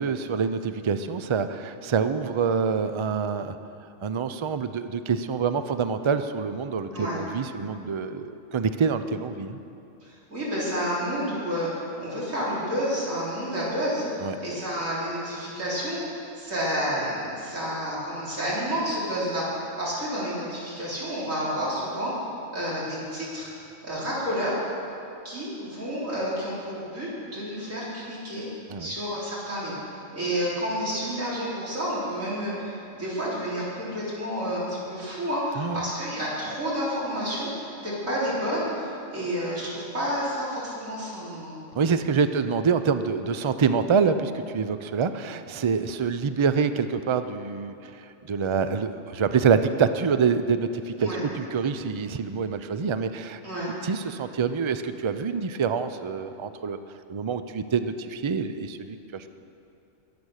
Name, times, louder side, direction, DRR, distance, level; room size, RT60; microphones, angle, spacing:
voice 1, 0.0-3.6 4.0-9.6 14.2-14.4 28.7-28.9 35.6-35.9 41.7-53.4 53.8-56.8 57.1-59.3, right 5 dB, 45° right, 10 dB, 0.3 m, -26 dB
voice 2, 10.0-22.1 22.5-23.5 23.8-24.5 25.2-28.5 28.8-29.8 30.1-41.6 51.0-51.2 53.4-53.7, equal, 85° right, -8 dB, 4.4 m, -30 dB
22.0 x 8.7 x 6.5 m, 2.7 s
omnidirectional pair, 1.3 m